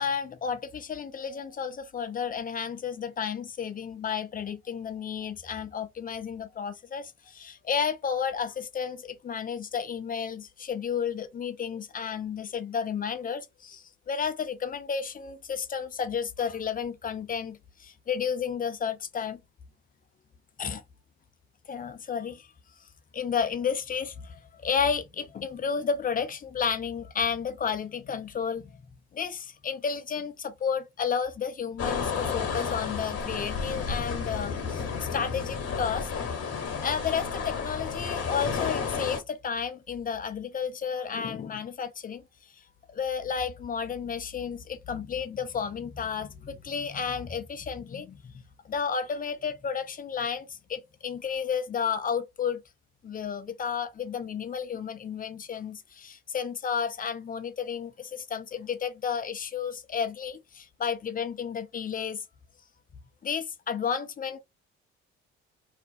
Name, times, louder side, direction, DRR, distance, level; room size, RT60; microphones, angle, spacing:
voice 1, 0.0-19.4 20.6-20.8 21.7-22.5 23.1-28.8 29.1-36.1 36.8-42.2 42.9-48.3 48.6-52.6 53.0-62.2 63.2-64.4, left 7 dB, 25° left, 0.5 m, -32 dB
sound 1, 31.8-39.2, left 6 dB, 40° left, 1.0 m, -32 dB
2.4 x 2.1 x 2.6 m
hypercardioid pair, 45°, 37 cm